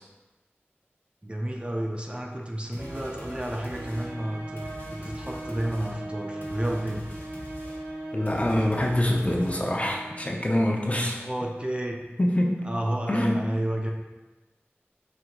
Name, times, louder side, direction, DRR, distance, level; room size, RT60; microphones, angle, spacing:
voice 1, 1.2-7.1 11.2-12.0 12.6-13.9, right 1 dB, 25° right, 0 dB, 0.6 m, -31 dB
sound 1, 2.7-9.9, left 1 dB, 50° left, 1.0 m, -44 dB
sound 2, 2.8-11.1, right 1 dB, 70° right, 1.0 m, -39 dB
voice 2, 8.1-11.2 12.2-12.6 13.1-13.4, left 1 dB, 30° left, 0 dB, 0.6 m, -25 dB
4.5 x 2.7 x 3.9 m, 1.1 s
wide cardioid pair, 45°, 4 cm